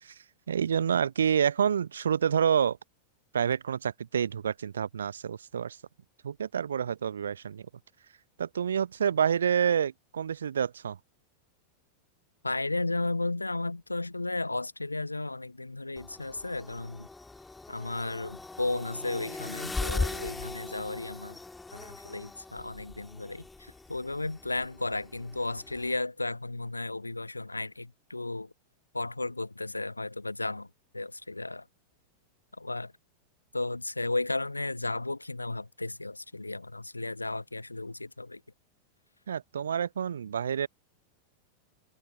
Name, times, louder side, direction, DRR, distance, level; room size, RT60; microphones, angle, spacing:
voice 1, 0.5-2.8 3.3-5.8 6.2-7.7 8.4-11.0 39.3-40.7, right 8 dB, 70° right, 0.9 m, -28 dB
voice 2, 12.4-17.1 17.7-21.4 21.7-28.5 28.9-30.7 30.9-31.6 32.6-32.9 33.5-38.4, left 2 dB, 85° left, 1.5 m, -34 dB
sound 1, 16.0-26.0, left 3 dB, 10° left, 3.4 m, -39 dB
figure-of-eight pair, 90°, 0 cm